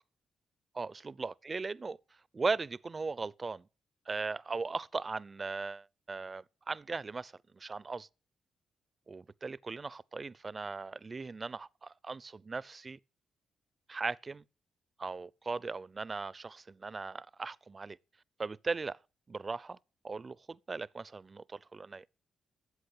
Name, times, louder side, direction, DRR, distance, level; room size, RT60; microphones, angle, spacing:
voice 1, 0.8-2.0 2.3-3.7 4.1-8.1 9.1-13.0 13.9-14.4 15.0-18.0 18.4-19.0 19.3-19.8 20.0-22.0, right 4 dB, 40° right, 0.6 m, -38 dB
13.0 x 7.9 x 8.7 m
supercardioid pair, 55°, 0 cm